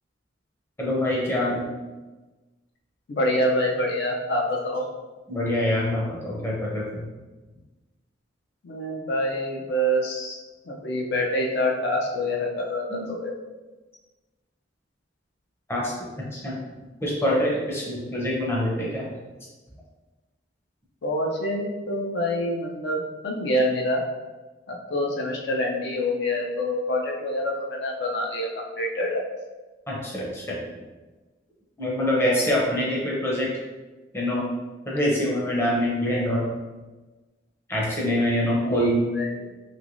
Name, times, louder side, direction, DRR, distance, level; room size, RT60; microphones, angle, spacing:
voice 1, 0.8-1.7 5.3-7.1 12.9-13.2 15.7-15.9 16.2-16.6 17.0-19.0 29.9-30.7 31.8-33.5 34.1-34.4 34.9-36.5 37.7-39.0, left 1 dB, 15° left, -5 dB, 0.6 m, -25 dB
voice 2, 3.1-4.9 8.6-10.4 10.7-13.3 21.0-24.0 24.7-28.5 28.8-29.2 38.6-39.3, left 1 dB, 60° left, -1 dB, 0.4 m, -26 dB
3.1 x 3.0 x 2.5 m, 1.2 s
head